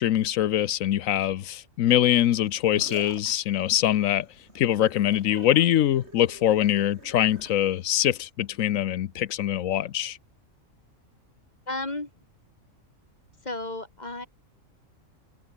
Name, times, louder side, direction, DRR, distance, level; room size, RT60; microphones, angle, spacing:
voice 1, 0.0-4.3 4.5-10.2, left 12 dB, 80° left, 1.1 m, -23 dB
sound 1, 2.3-8.3, right 2 dB, 55° right, 5.1 m, -48 dB
voice 2, 11.7-12.1 13.4-14.3, left 2 dB, 30° left, 3.2 m, -33 dB
open air
omnidirectional pair, 1.4 m